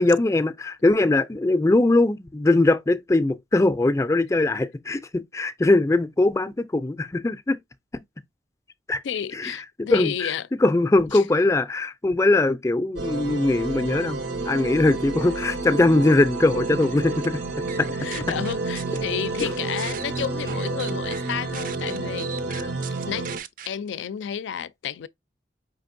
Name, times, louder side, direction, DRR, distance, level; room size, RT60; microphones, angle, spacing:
voice 1, 0.0-7.6 7.9-8.0 8.9-9.0 9.3-10.3 10.6-17.4 17.8-17.9 19.4-19.5 22.5-22.7, left 2 dB, 15° left, 0.4 m, -21 dB
voice 2, 9.0-10.5 11.1-11.2 18.0-22.3 23.0-23.3 23.7-25.1, left 8 dB, 85° left, 0.4 m, -31 dB
sound 1, 13.0-23.4, right 3 dB, 90° right, 0.9 m, -30 dB
sound 2, 16.8-17.3 17.7-19.0 19.4-23.7, right 9 dB, 50° right, 0.4 m, -39 dB
5.1 x 3.4 x 2.5 m
head